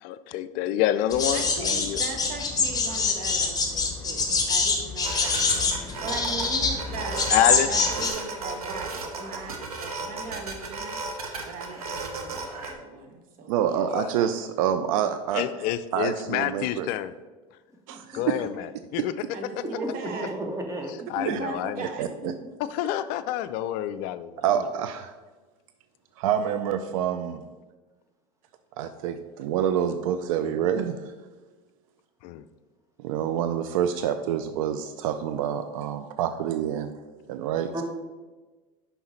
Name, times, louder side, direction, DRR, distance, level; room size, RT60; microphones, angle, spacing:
voice 1, 0.0-2.0 7.3-7.7 13.9-14.1 15.3-17.1 18.1-19.1 21.1-21.8 22.7-24.3 32.2-32.4, left 12 dB, 55° left, 12 dB, 0.4 m, -27 dB
sound 1, 1.1-8.1, left 4 dB, 20° left, 1.4 m, -25 dB
voice 2, 1.3-11.0 11.4-13.8 18.3-18.6 19.3-20.3 21.2-22.5, right 3 dB, 50° right, 4 dB, 1.2 m, -39 dB
sound 2, 5.0-12.7, right 3 dB, 85° right, 0.9 m, -35 dB
voice 3, 13.5-15.5 15.9-16.9 17.9-18.5 19.0-19.1 21.3-21.4 22.0-22.3 24.4-25.1 26.2-27.4 28.8-31.1 33.0-36.9 37.3-37.8, right 9 dB, 65° right, 9 dB, 0.4 m, -27 dB
voice 4, 17.9-18.2 19.6-20.9 37.7-37.8, right 1 dB, 15° right, 2 dB, 1.4 m, -33 dB
5.6 x 5.4 x 4.4 m, 1.2 s
hypercardioid pair, 75°, 18 cm